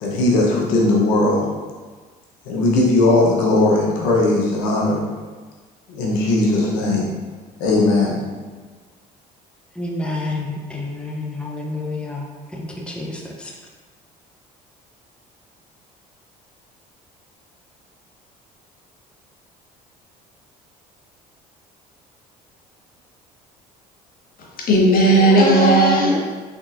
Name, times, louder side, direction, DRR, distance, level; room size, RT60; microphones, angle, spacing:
voice 1, 0.0-1.5 2.5-5.0 5.9-7.1 7.6-8.2, left 2 dB, 80° left, -2 dB, 0.9 m, -18 dB
voice 2, 9.8-13.5, left 2 dB, 5° left, -1 dB, 0.7 m, -29 dB
voice 3, 24.4-26.3, right 1 dB, 50° left, -2 dB, 1.3 m, -15 dB
5.3 x 3.7 x 2.6 m, 1.4 s
hypercardioid pair, 65°, 19 cm